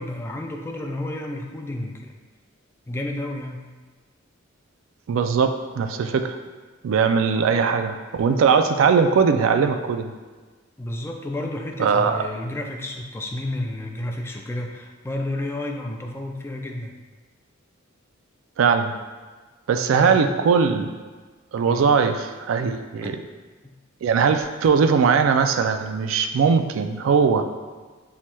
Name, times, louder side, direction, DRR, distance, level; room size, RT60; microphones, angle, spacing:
voice 1, 0.0-2.2 2.9-3.7 10.8-16.9 19.9-20.3 21.7-21.9 23.0-23.1 23.6-23.8, left 1 dB, 10° left, 1 dB, 0.3 m, -31 dB
voice 2, 5.1-6.4 6.8-10.1 11.8-12.2 18.6-18.9 19.7-20.9 21.5-23.2 24.0-27.4, right 5 dB, 75° right, 8 dB, 0.3 m, -20 dB
5.6 x 3.1 x 2.2 m, 1.4 s
head